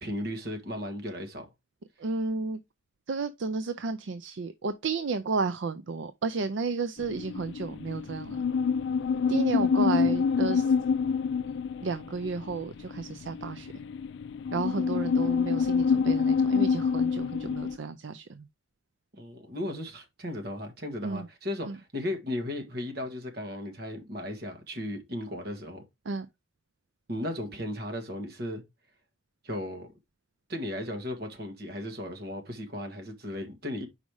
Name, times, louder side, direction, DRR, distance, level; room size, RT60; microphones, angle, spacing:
voice 1, 0.0-1.4 10.0-10.1 19.1-25.8 27.1-28.6 29.4-29.9 30.5-33.9, left 1 dB, 50° right, 1.7 m, -36 dB
voice 2, 2.0-2.6 3.1-8.4 9.3-10.7 11.8-13.7 14.5-18.5 21.0-21.3 21.7-21.8 26.1-26.3, right 4 dB, 70° right, 0.5 m, -32 dB
sound 1, 7.0-17.8, left 5 dB, 60° left, 0.3 m, -27 dB
5.3 x 4.9 x 4.7 m
head